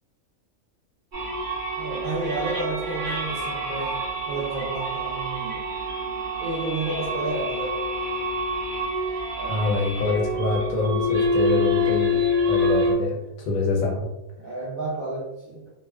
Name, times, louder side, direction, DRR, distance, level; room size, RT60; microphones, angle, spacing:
sound 1, 1.1-12.9, left 1 dB, 45° right, 0.8 m, -27 dB
voice 1, 1.8-5.6 6.4-7.8 9.3-9.6 14.4-15.7, right 3 dB, 65° right, -6 dB, 0.5 m, -31 dB
voice 2, 9.5-14.1, left 3 dB, 80° left, -1 dB, 1.1 m, -25 dB
2.7 x 2.1 x 2.3 m, 0.94 s
omnidirectional pair, 1.5 m